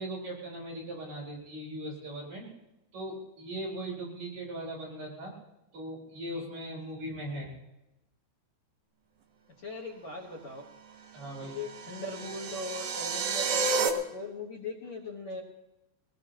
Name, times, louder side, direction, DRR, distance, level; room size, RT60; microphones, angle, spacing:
voice 1, 0.0-2.5 2.9-5.3 5.7-7.5 11.1-11.6, right 1 dB, 50° right, -4 dB, 5.7 m, -39 dB
voice 2, 9.6-10.7 11.4-15.4, left 2 dB, 60° left, -1 dB, 1.9 m, -39 dB
sound 1, 11.3-13.9, right 5 dB, 65° right, 2.6 m, -31 dB
22.0 x 20.0 x 3.0 m, 0.95 s
omnidirectional pair, 5.0 m